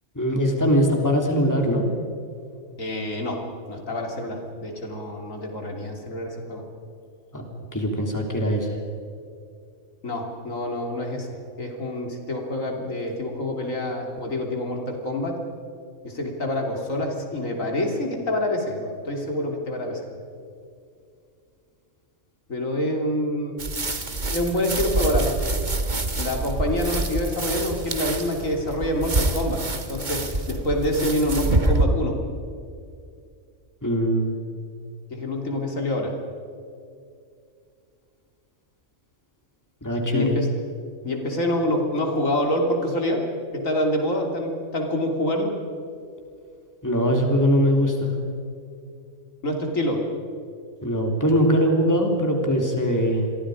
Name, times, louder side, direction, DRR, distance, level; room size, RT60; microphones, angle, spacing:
voice 1, 0.2-1.9 7.3-7.5 7.7-8.8 33.8-34.3 39.8-40.4 46.8-48.1 50.8-53.3, equal, 15° left, 1 dB, 3.4 m, -21 dB
voice 2, 2.8-6.7 10.0-11.3 11.6-15.4 16.0-20.0 22.5-23.6 24.3-25.3 26.2-29.6 29.9-32.2 35.1-36.1 40.1-40.5 41.0-43.2 43.5-45.5 49.4-50.1, left 1 dB, 75° left, 1 dB, 3.5 m, -26 dB
sound 1, 23.6-31.9, right 2 dB, 35° right, 1.8 m, -26 dB
29.5 x 23.0 x 5.1 m, 2.4 s
omnidirectional pair, 1.4 m